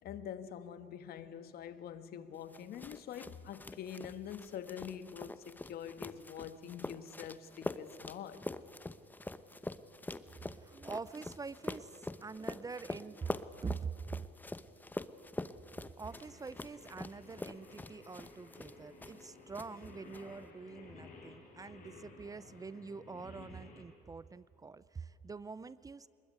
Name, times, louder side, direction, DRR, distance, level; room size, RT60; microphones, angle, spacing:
voice 1, 0.0-8.4, left 9 dB, 65° left, 1.6 m, -45 dB
sound 1, 2.5-19.3 19.5-20.2, left 2 dB, 10° left, 0.9 m, -45 dB
voice 2, 10.4-14.2 15.8-26.1, right 5 dB, 20° right, 0.5 m, -45 dB
Singing, 16.1-23.8, left 3 dB, 50° left, 7.1 m, -55 dB
24.5 x 21.5 x 9.6 m
cardioid pair, 110°, 17 cm